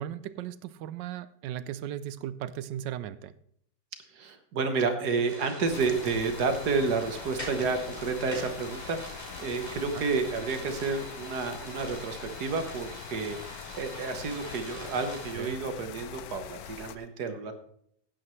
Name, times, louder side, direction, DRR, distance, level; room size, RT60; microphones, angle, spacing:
voice 1, 0.0-3.3 9.9-10.0 15.3-15.6, right 11 dB, 85° right, 15 dB, 1.3 m, -37 dB
voice 2, 4.1-17.5, right 4 dB, 65° right, 7 dB, 1.7 m, -30 dB
sound 1, 5.3-15.3, equal, 15° left, 5.4 m, -43 dB
sound 2, 5.7-17.0, left 10 dB, 70° left, 1.1 m, -44 dB
16.5 x 8.8 x 3.2 m, 0.68 s
omnidirectional pair, 1.9 m